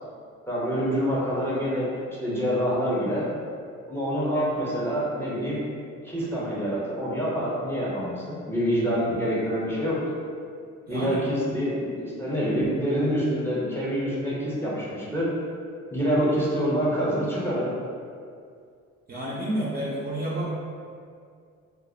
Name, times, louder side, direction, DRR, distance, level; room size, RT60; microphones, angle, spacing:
voice 1, 0.5-3.2 3.9-5.6 6.0-10.0 10.9-15.3 15.9-17.7, equal, 10° left, -7 dB, 0.6 m, -26 dB
voice 2, 10.9-11.5 19.1-20.5, right 1 dB, 30° right, -6 dB, 0.4 m, -30 dB
2.4 x 2.0 x 2.6 m, 2.3 s
cardioid pair, 90°, 30 cm